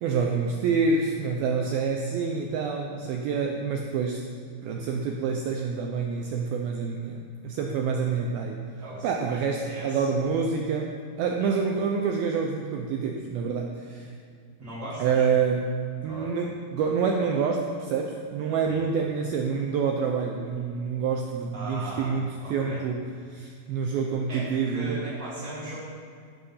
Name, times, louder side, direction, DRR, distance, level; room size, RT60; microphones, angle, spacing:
voice 1, 0.0-4.3 4.6-8.6 9.0-14.1 15.0-25.0, right 5 dB, 85° right, 2 dB, 2.1 m, -27 dB
voice 2, 8.8-10.3 11.4-11.5 14.6-15.3 16.0-16.3 18.6-18.8 21.5-22.1 22.4-22.8 24.3-25.8, right 1 dB, 50° right, -8 dB, 2.1 m, -38 dB
15.5 x 6.6 x 5.6 m, 2.2 s
omnidirectional pair, 5.2 m